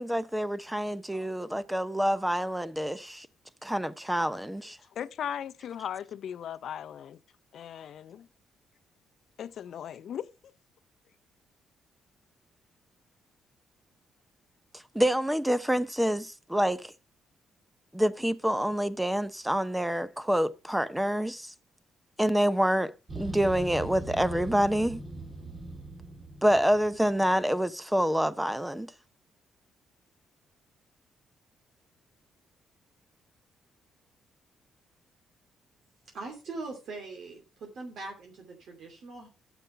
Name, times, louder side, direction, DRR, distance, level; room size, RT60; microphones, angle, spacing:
voice 1, 0.0-3.3 3.6-4.8 14.9-16.9 17.9-21.5 22.2-25.0 26.4-28.9, equal, 5° right, 0.7 m, -27 dB
voice 2, 5.0-7.2 7.5-8.3 9.4-10.2, left 9 dB, 65° left, 0.6 m, -37 dB
sound 1, 23.1-27.3, right 2 dB, 30° right, 2.2 m, -40 dB
voice 3, 36.1-39.3, right 3 dB, 65° right, 2.7 m, -41 dB
9.8 x 7.1 x 5.6 m
cardioid pair, 90°, 0 cm